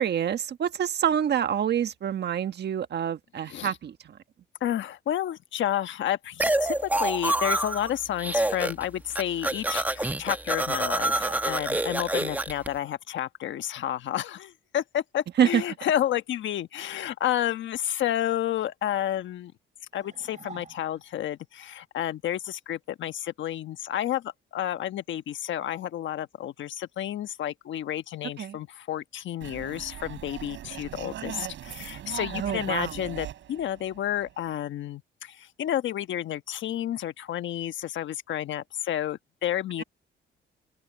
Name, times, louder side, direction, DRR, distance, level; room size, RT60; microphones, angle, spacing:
voice 1, 0.0-4.2 15.4-15.6 28.4-28.6 32.3-33.0, right 9 dB, 60° right, 1.5 m, -26 dB
voice 2, 4.6-19.5 19.9-39.8, left 11 dB, 70° left, 1.2 m, -31 dB
sound 1, 6.4-7.9 8.2-8.8 9.1-12.7, right 1 dB, 10° right, 1.3 m, -27 dB
sound 2, 10.7-11.9 19.9-21.2, right 5 dB, 40° right, 7.9 m, -48 dB
sound 3, 29.4-34.6, right 11 dB, 75° right, 5.2 m, -39 dB
open air
cardioid pair, 90°, 20 cm